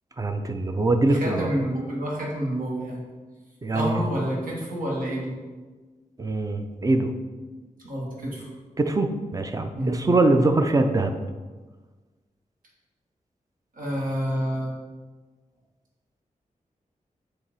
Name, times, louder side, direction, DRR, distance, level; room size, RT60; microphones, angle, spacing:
voice 1, 0.2-1.5 3.6-4.1 6.2-7.1 8.8-11.1, right 2 dB, 25° right, 7 dB, 0.5 m, -23 dB
voice 2, 1.2-3.0 3.7-5.4 7.8-8.5 9.8-10.0 13.7-14.7, equal, 75° right, -4 dB, 1.8 m, -28 dB
7.0 x 2.9 x 4.8 m, 1.3 s
wide cardioid pair, 95°, 14 cm